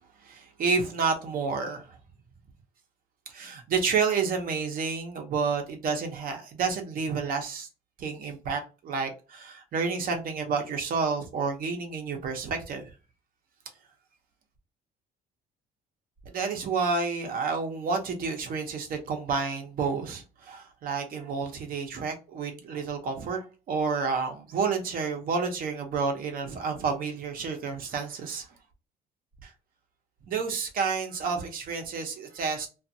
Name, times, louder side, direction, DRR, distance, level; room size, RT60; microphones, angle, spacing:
voice 1, 0.2-2.0 3.3-7.7 8.0-12.9 16.2-28.5 29.4-29.5 30.3-32.7, right 5 dB, 60° right, 0.9 m, -30 dB
2.5 x 2.5 x 2.7 m
cardioid pair, 110°, 17 cm